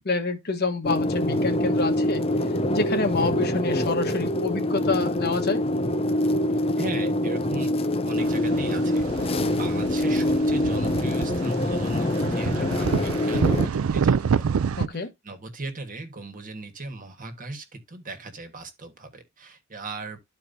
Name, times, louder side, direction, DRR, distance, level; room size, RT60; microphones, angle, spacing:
voice 1, 0.0-2.2 2.7-5.6 14.8-15.1, left 3 dB, 50° left, 1.3 m, -27 dB
sound 1, 0.8-13.7, left 1 dB, 25° left, 0.5 m, -25 dB
voice 2, 6.8-7.7 8.0-14.4 14.9-20.2, right 2 dB, 40° right, 1.5 m, -38 dB
sound 2, 8.2-14.9, right 6 dB, 80° right, 0.4 m, -27 dB
12.5 x 4.5 x 2.6 m
head